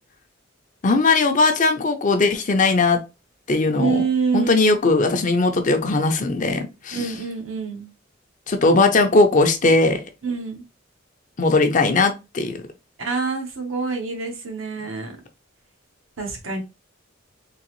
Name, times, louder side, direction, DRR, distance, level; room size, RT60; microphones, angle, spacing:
voice 1, 0.8-3.0 3.5-4.0 4.3-7.1 8.5-10.0 11.4-12.6, left 3 dB, 40° left, 0.6 m, -19 dB
voice 2, 3.8-4.8 6.9-7.9 10.2-10.6 13.0-15.2 16.2-16.6, right 5 dB, 85° right, 1.2 m, -26 dB
3.8 x 2.9 x 3.0 m
head